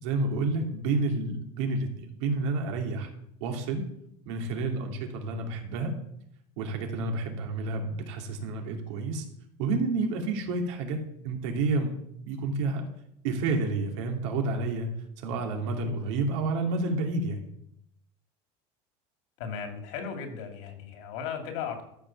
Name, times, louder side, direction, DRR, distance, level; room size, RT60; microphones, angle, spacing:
voice 1, 0.0-3.1 3.4-3.8 4.3-5.9 6.6-9.2 9.6-11.0 11.2-11.9 12.2-12.9 13.2-14.9 15.2-17.4, right 3 dB, 80° right, 3 dB, 2.5 m, -29 dB
voice 2, 19.4-21.8, left 6 dB, 75° left, 5 dB, 2.5 m, -36 dB
13.5 x 5.4 x 7.1 m, 0.76 s
cardioid pair, 170°, 15 cm